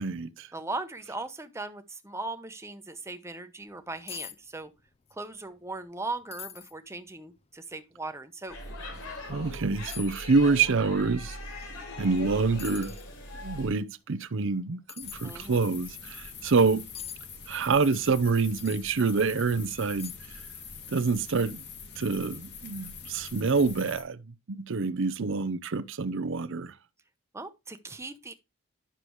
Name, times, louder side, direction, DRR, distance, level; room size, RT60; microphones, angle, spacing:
voice 1, 0.0-0.5 9.3-11.4 12.0-12.9 13.3-16.8 17.5-20.1 20.9-21.6 22.0-26.7, right 4 dB, 60° right, 0.6 m, -27 dB
voice 2, 0.5-4.7 5.1-8.6 15.2-15.6 27.3-28.3, right 3 dB, 15° right, 0.8 m, -38 dB
sound 1, 3.7-3.8 4.1-4.4 4.6-5.2 5.6-5.7 6.3-6.7 7.4-7.5 9.0-9.1 9.9-10.2 12.0-12.2 12.6-13.1 14.9-15.2 16.9-17.2 18.6-18.9 19.4-19.5 20.0-20.4 20.7-20.8, left 10 dB, 30° left, 0.5 m, -42 dB
Speech / Shout / Subway metro underground, 8.5-13.7, left 1 dB, 80° left, 4.0 m, -40 dB
sound 2, 15.0-24.0, left 5 dB, 55° left, 2.0 m, -44 dB
10.0 x 6.7 x 3.1 m
head